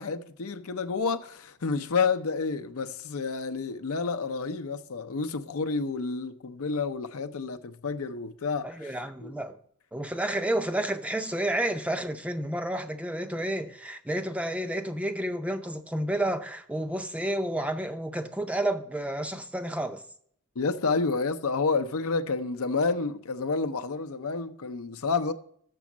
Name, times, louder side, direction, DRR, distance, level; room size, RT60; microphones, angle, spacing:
voice 1, 0.0-8.9 9.2-9.3 20.6-25.3, left 4 dB, 70° left, 0.6 m, -29 dB
voice 2, 8.6-9.6 9.9-20.0, right 1 dB, 5° right, 0.5 m, -30 dB
6.9 x 6.1 x 7.2 m
head